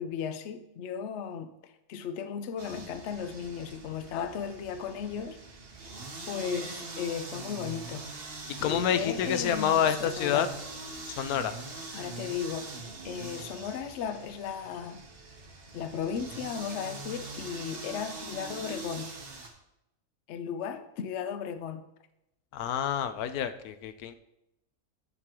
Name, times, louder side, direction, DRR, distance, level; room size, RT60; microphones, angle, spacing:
voice 1, 0.0-1.5 1.9-5.4 6.3-8.1 8.6-10.5 11.9-12.8 13.0-15.0 15.7-19.1 20.3-21.9, left 7 dB, 60° left, 10 dB, 0.8 m, -36 dB
sound 1, 2.6-19.5, right 3 dB, 45° right, 1.2 m, -43 dB
voice 2, 8.5-10.5 11.1-11.5 22.5-24.2, left 9 dB, 85° left, 11 dB, 1.1 m, -28 dB
7.9 x 7.6 x 3.0 m, 0.86 s
omnidirectional pair, 1.5 m